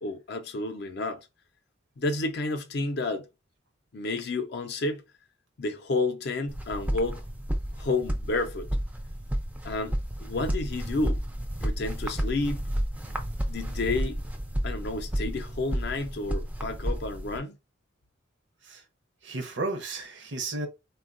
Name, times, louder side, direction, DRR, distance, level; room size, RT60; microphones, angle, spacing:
voice 1, 0.0-1.3 2.0-3.3 3.9-5.0 5.6-7.2 7.8-8.7 9.6-11.2 11.6-12.6 13.5-14.2 14.6-17.6, left 2 dB, 55° left, 0.5 m, -30 dB
sound 1, 6.5-17.4, equal, 5° right, 0.4 m, -31 dB
voice 2, 19.2-20.7, right 2 dB, 65° right, 0.6 m, -33 dB
3.5 x 2.2 x 2.4 m
head